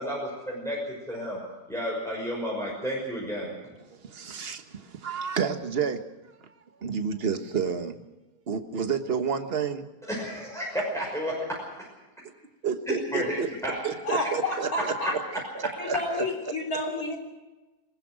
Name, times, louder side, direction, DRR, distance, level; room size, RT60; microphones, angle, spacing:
voice 1, 0.0-1.4 1.7-3.5 10.0-11.9 12.9-13.9, equal, ahead, -4 dB, 5.9 m, -32 dB
voice 2, 4.0-4.6 4.9-6.0 6.8-7.9 8.5-9.8 12.6-13.5 13.8-14.9 15.3-16.2, right 6 dB, 40° right, 7 dB, 1.5 m, -30 dB
voice 3, 14.0-15.2 15.8-17.2, left 2 dB, 60° left, 1 dB, 4.1 m, -30 dB
21.0 x 20.5 x 6.4 m, 1.1 s
omnidirectional pair, 1.7 m